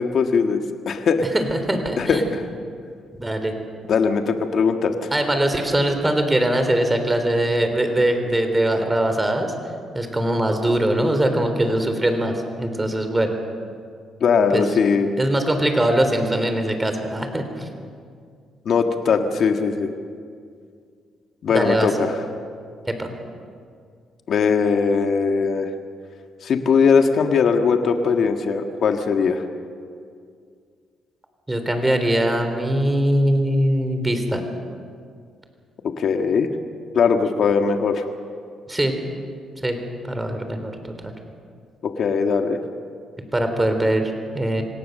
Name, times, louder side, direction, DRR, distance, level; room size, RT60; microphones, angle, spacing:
voice 1, 0.0-1.3 2.0-2.5 3.9-5.1 14.2-15.2 18.7-19.9 21.4-22.2 24.3-25.7 26.4-29.4 36.0-36.5 36.9-38.1 41.8-42.6, left 5 dB, 60° left, 5 dB, 1.7 m, -20 dB
voice 2, 1.3-2.2 3.1-3.5 5.1-9.5 9.9-13.4 14.5-14.6 15.2-17.6 21.5-21.9 22.9-23.1 31.5-34.4 38.7-38.9 39.6-39.8 40.0-41.1 43.3-44.6, right 1 dB, 15° right, 6 dB, 3.5 m, -21 dB
26.0 x 18.0 x 6.6 m, 2.2 s
cardioid pair, 90°, 0 cm